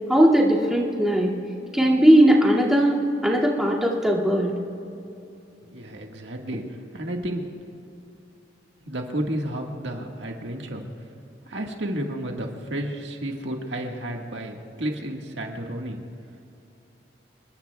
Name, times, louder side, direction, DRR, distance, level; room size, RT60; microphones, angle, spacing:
voice 1, 0.1-1.3 1.7-4.5, equal, 5° right, -5 dB, 2.3 m, -18 dB
voice 2, 5.6-7.5 8.8-10.8 11.4-16.0, right 1 dB, 75° right, 1 dB, 1.7 m, -32 dB
29.5 x 20.5 x 2.3 m, 2.8 s
head